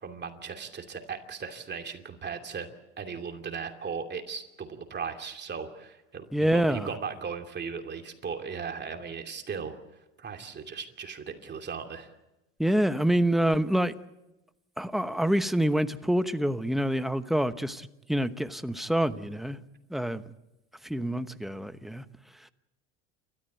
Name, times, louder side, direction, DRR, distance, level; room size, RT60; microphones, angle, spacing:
voice 1, 0.0-2.7 3.0-9.8 10.2-12.1, right 6 dB, 30° right, 2.7 m, -37 dB
voice 2, 6.3-6.9 12.6-13.9 14.8-19.6 19.9-20.2 20.8-22.0, right 1 dB, ahead, 1.0 m, -26 dB
29.0 x 13.5 x 9.2 m
supercardioid pair, 100°, 35 cm